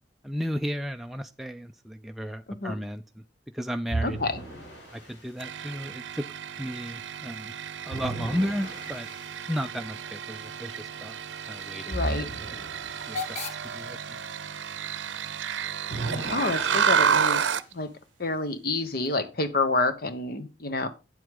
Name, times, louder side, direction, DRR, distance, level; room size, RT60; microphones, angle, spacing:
voice 1, 0.2-3.2 3.5-4.2 4.9-6.2 6.6-7.5 7.9-9.1 9.5-11.2 11.5-12.6 13.1-14.2, equal, ahead, 0.4 m, -34 dB
sound 1, 3.9-5.3 7.9-9.4 11.9-13.3 15.9-17.5, right 2 dB, 90° left, 4.8 m, -36 dB
voice 2, 4.0-4.4 11.9-12.3 16.3-17.9 18.2-20.9, left 3 dB, 55° left, 1.2 m, -28 dB
sound 2, 5.4-17.7, right 7 dB, 85° right, 0.6 m, -31 dB
Hiss / Train / Alarm, 8.4-18.1, left 5 dB, 40° left, 1.3 m, -46 dB
8.9 x 7.9 x 3.7 m
head